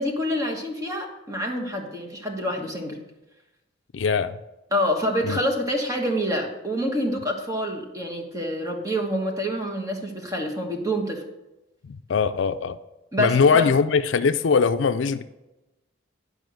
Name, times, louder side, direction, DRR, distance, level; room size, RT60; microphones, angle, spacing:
voice 1, 0.0-3.0 4.7-11.2 13.1-13.7, equal, 15° right, 1.3 m, -27 dB
voice 2, 3.9-4.4 5.2-5.4 11.8-12.8 13.2-15.2, left 5 dB, 65° left, 0.4 m, -21 dB
11.0 x 5.4 x 6.4 m
head